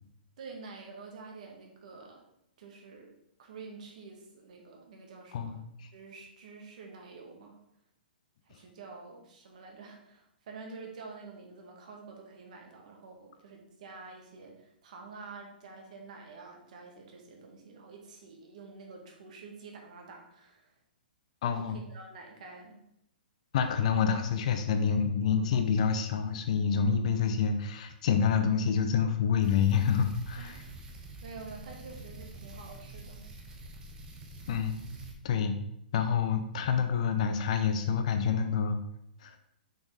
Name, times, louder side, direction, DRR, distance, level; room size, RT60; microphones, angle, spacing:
voice 1, 0.4-2.2 2.6-3.1 3.4-5.6 5.9-7.6 8.4-20.7 21.6-22.8 30.4-33.2 33.5-33.6, right 4 dB, 50° right, 1 dB, 1.9 m, -48 dB
voice 2, 5.3-5.9 21.4-21.8 23.5-30.6 34.5-34.8 35.2-35.6 35.9-38.8 39.2-39.4, left 6 dB, 45° left, 7 dB, 0.7 m, -27 dB
sound 1, 29.4-35.2, right 2 dB, 15° right, 1.1 m, -46 dB
6.5 x 6.2 x 3.5 m, 0.77 s
figure-of-eight pair, 115°, 5 cm